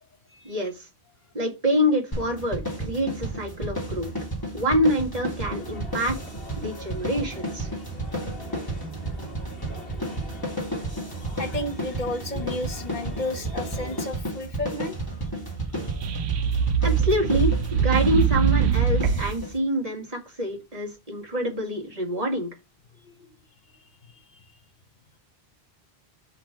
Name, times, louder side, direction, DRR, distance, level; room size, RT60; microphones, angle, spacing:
voice 1, 0.4-0.9 1.3-4.1 4.5-6.2 6.6-7.7 16.8-22.5, equal, 35° right, 2.0 m, -26 dB
sound 1, 2.1-19.6, right 1 dB, 20° left, 2.3 m, -32 dB
sound 2, 5.4-14.1, left 1 dB, 60° left, 1.5 m, -44 dB
voice 2, 11.4-15.2 16.2-16.3 16.6-16.7 23.0-23.1 24.1-24.4, left 2 dB, 45° left, 1.0 m, -33 dB
sound 3, 15.7-19.4, right 7 dB, 80° right, 0.9 m, -23 dB
5.2 x 3.9 x 5.9 m
omnidirectional pair, 1.1 m